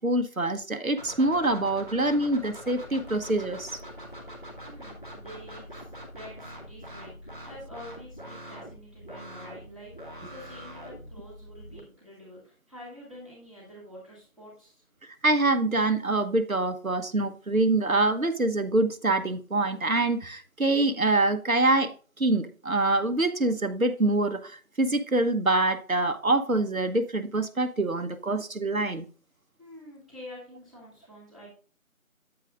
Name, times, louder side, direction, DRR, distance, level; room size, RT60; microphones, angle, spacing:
voice 1, 0.0-3.8 15.2-29.0, right 2 dB, 75° right, 1.0 m, -25 dB
sound 1, 1.0-11.8, equal, 35° left, 2.0 m, -43 dB
voice 2, 4.7-14.8 29.6-31.5, equal, ahead, 1.7 m, -47 dB
9.0 x 8.7 x 2.5 m
figure-of-eight pair, 180°, 42 cm